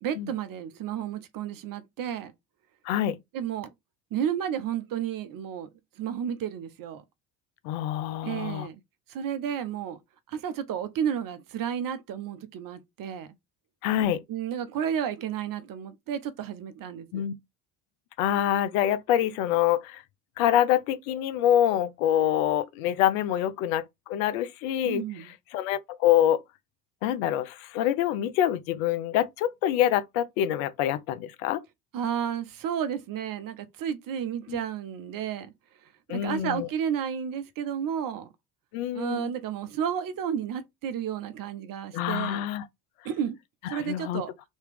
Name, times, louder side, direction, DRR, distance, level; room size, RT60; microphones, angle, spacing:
voice 1, 0.0-2.3 3.3-3.7 4.1-5.7 6.0-7.0 8.2-8.8 9.1-10.0 10.3-13.3 14.3-17.2 24.8-25.3 31.9-35.5 36.1-38.3 38.9-42.4 43.0-43.4 43.7-44.3, right 9 dB, 50° right, 0.9 m, -32 dB
voice 2, 2.9-3.2 7.6-8.7 13.8-14.2 17.1-17.3 18.2-20.0 20.4-25.0 25.5-26.4 27.0-31.6 34.5-34.6 36.1-36.7 38.7-39.3 41.9-42.6 43.7-44.2, left 11 dB, 75° left, 0.6 m, -26 dB
3.2 x 3.0 x 3.3 m
hypercardioid pair, 65°, 42 cm